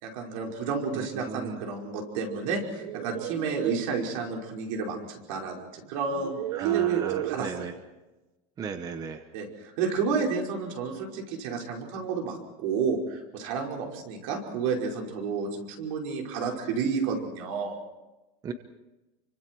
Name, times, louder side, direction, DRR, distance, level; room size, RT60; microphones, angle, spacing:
voice 1, 0.0-7.7 9.3-17.8, right 5 dB, 70° right, 1 dB, 5.4 m, -31 dB
voice 2, 0.9-1.6 6.5-7.7 8.6-9.2 18.4-18.5, right 6 dB, 20° right, 8 dB, 1.0 m, -36 dB
sound 1, 2.5-3.9 5.3-5.4 6.1-7.5, right 16 dB, 85° right, 0.8 m, -31 dB
28.5 x 25.0 x 4.7 m, 1.0 s
cardioid pair, 175°, 18 cm